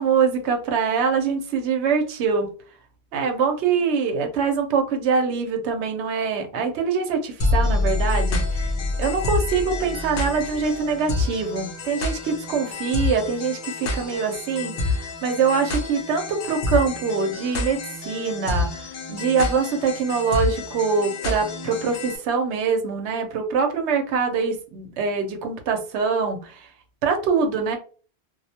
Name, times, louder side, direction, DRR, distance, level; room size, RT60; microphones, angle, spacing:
voice 1, 0.0-2.5 3.1-8.7 9.0-18.7 19.1-26.5 27.0-27.8, right 5 dB, 80° right, 5 dB, 0.9 m, -24 dB
sound 1, 7.4-22.2, left 3 dB, 60° left, 0.7 m, -27 dB
2.3 x 2.1 x 2.7 m, 0.39 s
omnidirectional pair, 1.1 m